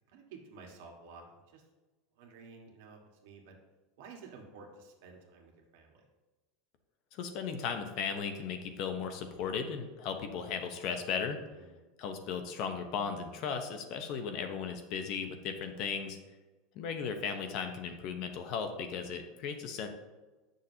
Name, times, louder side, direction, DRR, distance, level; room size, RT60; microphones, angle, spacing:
voice 1, 0.1-1.6 2.2-3.6 4.0-6.0 11.6-11.8 15.7-15.9, right 4 dB, 75° right, 1 dB, 1.6 m, -52 dB
voice 2, 7.1-11.4 12.0-16.2 16.7-19.9, left 6 dB, 45° left, 6 dB, 0.8 m, -36 dB
9.3 x 6.4 x 2.8 m, 1.2 s
supercardioid pair, 165°, 0 cm